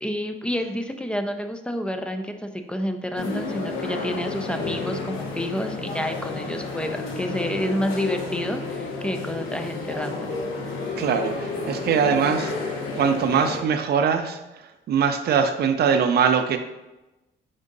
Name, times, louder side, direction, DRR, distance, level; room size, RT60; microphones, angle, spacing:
voice 1, 0.0-10.4, equal, 5° left, 6 dB, 0.4 m, -29 dB
sound 1, 3.2-13.6, left 3 dB, 85° left, 0.9 m, -31 dB
voice 2, 11.0-12.5 13.0-14.4 14.9-16.6, right 6 dB, 55° right, 7 dB, 0.5 m, -22 dB
5.1 x 3.6 x 2.6 m, 1.0 s
cardioid pair, 90°, 20 cm